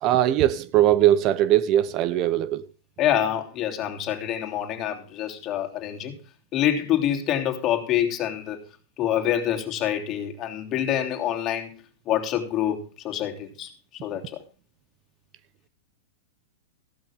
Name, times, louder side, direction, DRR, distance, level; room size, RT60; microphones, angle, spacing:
voice 1, 0.0-2.7, right 12 dB, 40° right, 0.9 m, -20 dB
voice 2, 3.0-6.2 6.5-8.6 9.0-11.8 12.0-14.4, left 11 dB, 35° left, 3.1 m, -26 dB
15.5 x 12.0 x 3.7 m
hypercardioid pair, 120°, 0 cm